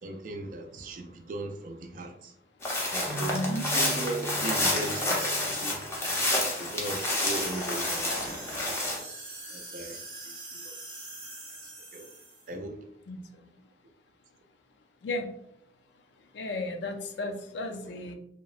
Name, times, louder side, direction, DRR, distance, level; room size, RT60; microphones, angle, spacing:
voice 1, 0.0-2.3 2.9-3.3 3.7-5.8 6.6-8.8 9.5-10.0 10.3-11.1 11.9-12.1 12.5-12.8, right 2 dB, 50° right, 5 dB, 0.3 m, -38 dB
sound 1, 2.6-9.0, left 1 dB, 15° left, 0.4 m, -29 dB
sound 2, 3.0-6.6, right 1 dB, 80° right, 0.8 m, -41 dB
voice 2, 3.3-3.7 13.1-13.2 15.0-15.3 16.3-18.1, left 2 dB, 80° left, 5 dB, 0.4 m, -33 dB
sound 3, 7.1-12.5, right 2 dB, 25° right, 0.7 m, -43 dB
2.8 x 2.1 x 2.4 m, 0.76 s
head